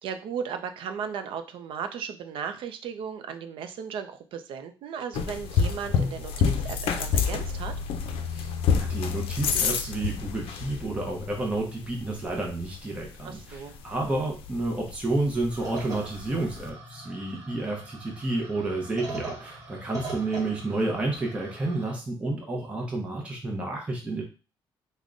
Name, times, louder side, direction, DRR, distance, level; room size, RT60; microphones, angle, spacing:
voice 1, 0.0-7.7 13.2-13.7, right 7 dB, 70° right, 8 dB, 0.5 m, -36 dB
sound 1, 5.1-16.7, left 6 dB, 85° left, 0.4 m, -30 dB
voice 2, 8.3-24.2, right 2 dB, 15° right, -1 dB, 0.6 m, -30 dB
sound 2, 15.5-22.0, right 3 dB, 35° right, 1.2 m, -41 dB
3.6 x 2.1 x 3.7 m, 0.33 s
cardioid pair, 160°, 9 cm